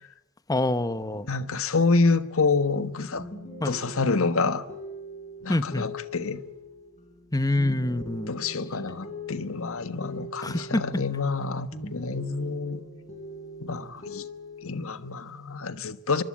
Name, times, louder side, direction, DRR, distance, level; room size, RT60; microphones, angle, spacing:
voice 1, 0.5-1.3 3.6-3.8 5.5-5.9 7.3-8.3 10.4-10.8, left 1 dB, 15° left, 0.9 m, -26 dB
voice 2, 1.2-3.2 3.6-4.6 5.4-6.4 8.3-12.8 13.6-14.2 14.6-16.2, left 4 dB, 65° left, 1.4 m, -27 dB
sound 1, 3.2-11.5 11.7-14.8, left 1 dB, 30° left, 4.7 m, -42 dB
25.0 x 24.0 x 8.7 m
head